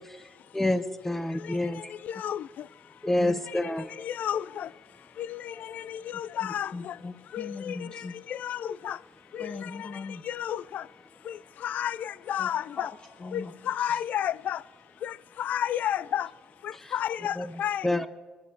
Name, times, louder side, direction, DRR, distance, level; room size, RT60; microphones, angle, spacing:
voice 1, 0.5-1.8 3.0-3.9 17.4-17.5 17.8-18.1, left 1 dB, 10° left, 0.9 m, -27 dB
voice 2, 2.0-2.4 4.0-4.7 5.2-6.9 7.3-8.0 8.3-9.0 9.3-9.6 10.3-10.8 11.3-11.4 11.6-12.9 13.3-14.6 15.0-16.3 16.9-18.1, left 10 dB, 60° left, 0.4 m, -31 dB
voice 3, 3.2-3.7 6.4-8.1 9.4-10.2 12.4-12.5 12.8-12.9 13.2-14.0, left 4 dB, 35° left, 1.2 m, -40 dB
22.5 x 8.4 x 6.9 m
cardioid pair, 100°, 3 cm